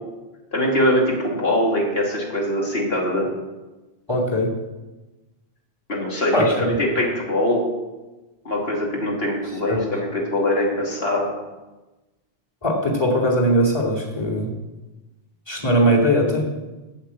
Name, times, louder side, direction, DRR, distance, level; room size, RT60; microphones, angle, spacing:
voice 1, 0.5-3.3 5.9-7.6 8.4-11.2, left 1 dB, 75° left, -2 dB, 2.9 m, -22 dB
voice 2, 4.1-4.5 6.3-6.8 9.7-9.8 12.6-14.5 15.5-16.5, equal, 25° left, 0 dB, 2.5 m, -20 dB
8.5 x 7.6 x 8.5 m, 1.1 s
omnidirectional pair, 1.1 m